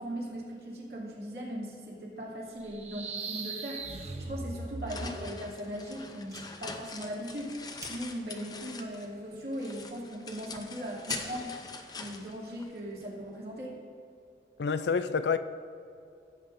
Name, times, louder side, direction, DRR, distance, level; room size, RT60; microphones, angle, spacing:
voice 1, 0.0-11.6 12.0-13.8, equal, 60° right, -5 dB, 2.7 m, -39 dB
sound 1, 2.6-5.5, right 3 dB, 40° right, 0.7 m, -39 dB
sound 2, 4.5-9.2 9.5-13.1, left 4 dB, 20° left, 0.6 m, -43 dB
Fire, 6.1-13.0, right 2 dB, 20° right, 1.1 m, -53 dB
voice 2, 14.6-15.4, left 5 dB, 75° left, 11 dB, 0.4 m, -27 dB
16.5 x 8.3 x 2.6 m, 2.5 s
head